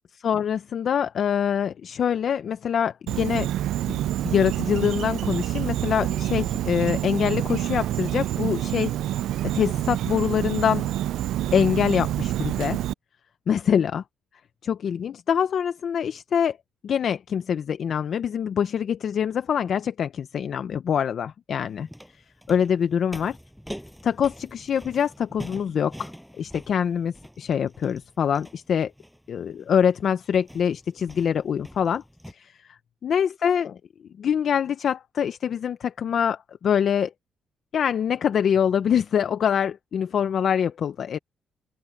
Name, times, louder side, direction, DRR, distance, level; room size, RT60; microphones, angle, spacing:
voice 1, 0.2-3.5 3.9-9.3 9.5-10.9 11.5-12.8 13.5-14.0 14.6-16.6 16.8-21.9 22.5-23.4 24.0-26.1 26.4-28.9 29.3-33.8 34.2-37.1 37.7-41.2, left 8 dB, 60° left, 0.7 m, -25 dB
Insect, 3.1-12.9, right 13 dB, 85° right, 0.4 m, -27 dB
sound 1, 21.6-32.3, equal, ahead, 6.8 m, -44 dB
open air
cardioid pair, 90°, 0 cm